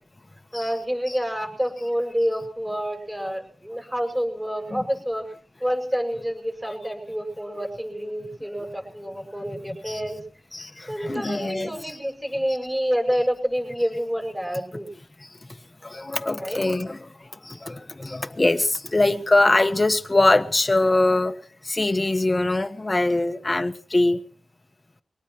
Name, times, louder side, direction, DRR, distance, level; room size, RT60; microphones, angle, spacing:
voice 1, 0.5-5.3 5.6-10.2 10.9-14.9 16.4-16.6, equal, 15° right, 2 dB, 7.3 m, -28 dB
voice 2, 11.0-11.7 15.8-17.1 17.5-21.3 21.7-24.2, left 2 dB, 30° left, 10 dB, 1.3 m, -22 dB
23.0 x 19.0 x 3.1 m, 0.42 s
cardioid pair, 65°, 0 cm